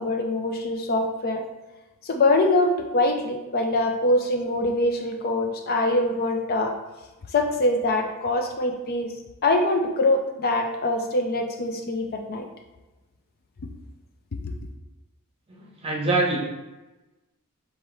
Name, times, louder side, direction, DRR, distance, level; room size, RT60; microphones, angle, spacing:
voice 1, 0.0-1.4 2.0-6.7 7.3-9.1 9.4-12.4, left 2 dB, 45° left, 3 dB, 0.4 m, -23 dB
voice 2, 15.8-16.4, right 2 dB, 25° right, -3 dB, 1.0 m, -22 dB
4.6 x 3.2 x 3.4 m, 1.1 s
head